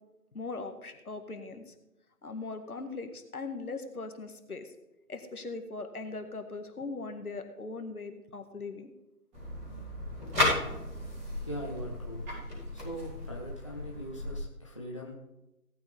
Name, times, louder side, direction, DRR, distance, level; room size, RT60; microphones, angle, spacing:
voice 1, 0.3-1.7 2.2-4.7 5.1-8.9, left 3 dB, 65° left, 7 dB, 2.0 m, -40 dB
sound 1, 9.3-14.4, left 1 dB, 10° right, 3.8 m, -34 dB
voice 2, 11.5-12.2 12.7-15.1, equal, 20° left, -2 dB, 0.9 m, -41 dB
18.0 x 8.8 x 3.6 m, 0.99 s
figure-of-eight pair, 175°, 46 cm